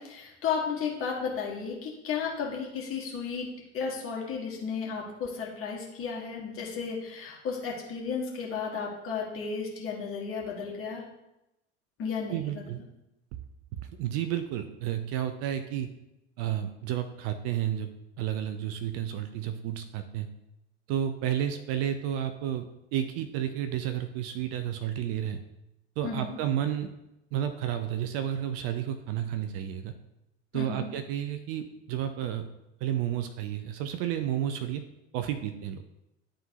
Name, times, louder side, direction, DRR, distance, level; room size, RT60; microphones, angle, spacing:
voice 1, 0.0-3.5 3.7-11.0 12.0-12.7 26.0-26.4 30.5-30.9, left 6 dB, 40° left, -2 dB, 1.8 m, -33 dB
voice 2, 12.3-12.8 14.0-15.9 16.4-17.9 18.2-20.3 20.9-25.4 26.0-26.9 27.3-29.9 30.5-32.5 32.8-34.8 35.1-35.8, right 10 dB, 40° right, 9 dB, 0.5 m, -31 dB
11.0 x 3.7 x 2.8 m, 0.91 s
figure-of-eight pair, 70°, 35 cm